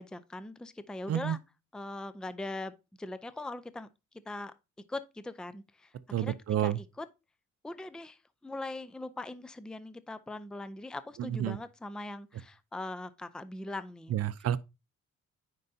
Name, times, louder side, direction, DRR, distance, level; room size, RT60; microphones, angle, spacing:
voice 1, 0.0-1.4 1.7-2.7 3.0-3.9 4.3-4.5 4.9-5.9 6.2-6.3 6.6-7.1 7.6-14.2, left 2 dB, 5° left, 0.5 m, -41 dB
voice 2, 6.1-6.8 11.2-11.6 14.1-14.6, right 11 dB, 55° right, 0.6 m, -30 dB
9.3 x 5.4 x 2.7 m
cardioid pair, 90°, 30 cm